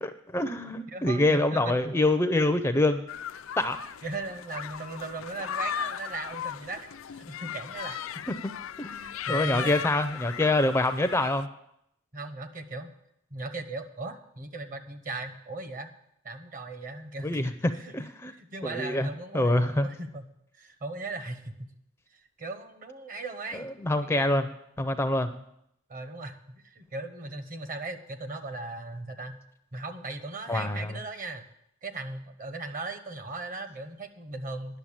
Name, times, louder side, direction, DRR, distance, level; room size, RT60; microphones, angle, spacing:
voice 1, 0.0-3.0 3.6-3.8 8.3-8.4 8.8-11.5 17.2-18.3 18.6-19.1 19.3-19.9 23.5-24.5 24.8-25.3 30.5-31.0, left 2 dB, 10° left, 8 dB, 0.5 m, -26 dB
voice 2, 0.9-2.0 4.0-8.0 8.9-9.7 12.1-12.9 13.3-15.9 16.2-17.9 18.4-20.2 20.5-21.7 22.4-23.7 24.1-24.5 25.3-25.4 25.9-26.4 26.6-29.4 29.7-31.4 31.8-34.8, right 2 dB, 40° right, 8 dB, 1.1 m, -38 dB
sound 1, 3.1-11.4, left 8 dB, 75° left, 0.4 m, -37 dB
10.5 x 6.8 x 8.7 m, 0.75 s
head